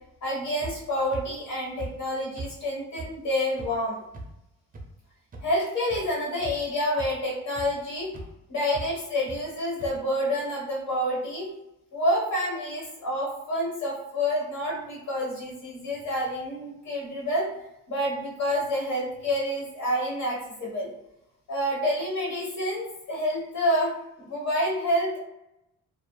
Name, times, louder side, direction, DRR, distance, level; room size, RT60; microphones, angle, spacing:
voice 1, 0.2-4.0 5.4-8.1 8.5-11.5 11.9-17.5 17.9-20.9 21.5-23.9 24.2-25.2, equal, 65° left, -4 dB, 1.4 m, -28 dB
sound 1, 0.6-0.7 1.1-1.2 1.8-1.9 2.4-2.5 3.0-3.1 3.6-3.7 4.1-4.2 4.7-4.8 5.3-5.4 5.9-6.0 6.4-6.7 7.0-7.1 7.6-7.7 8.1-8.3 8.7-8.9 9.3-9.4 9.8-9.9, right 2 dB, 30° right, 0.5 m, -37 dB
2.6 x 2.1 x 2.3 m, 0.87 s
cardioid pair, 90°, 30 cm